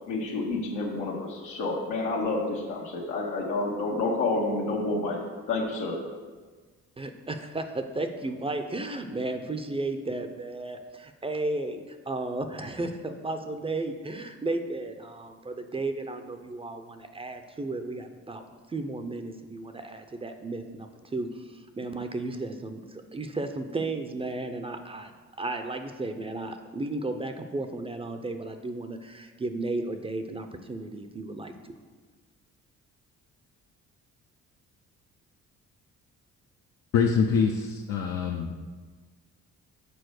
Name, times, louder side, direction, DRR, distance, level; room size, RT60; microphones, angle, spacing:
voice 1, 0.1-5.2 5.5-6.0, left 3 dB, 85° left, -3 dB, 1.4 m, -29 dB
voice 2, 7.0-18.4 18.7-25.1 25.4-31.7, right 2 dB, 20° right, 7 dB, 0.6 m, -34 dB
voice 3, 36.9-38.6, left 6 dB, 65° left, 2 dB, 0.7 m, -25 dB
6.9 x 4.2 x 6.4 m, 1.4 s
cardioid pair, 95°, 29 cm